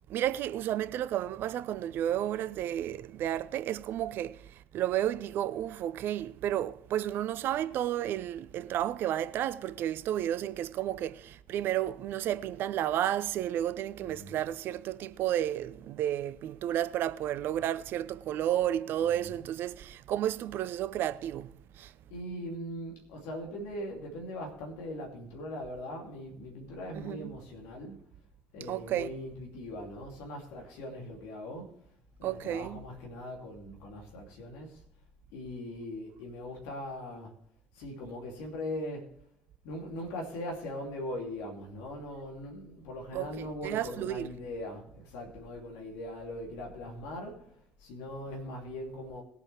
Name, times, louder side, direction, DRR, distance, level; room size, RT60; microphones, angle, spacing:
voice 1, 0.1-21.9 26.9-27.3 28.7-29.1 32.2-32.8 43.1-44.3, right 11 dB, 50° right, 0.7 m, -32 dB
voice 2, 14.0-14.5 19.0-19.5 22.1-28.0 28.5-31.7 32.2-34.8 35.3-37.3 37.7-39.1 39.6-47.5 47.8-49.2, left 1 dB, 60° left, 2.7 m, -40 dB
20.5 x 8.2 x 3.3 m
figure-of-eight pair, 55°, 5 cm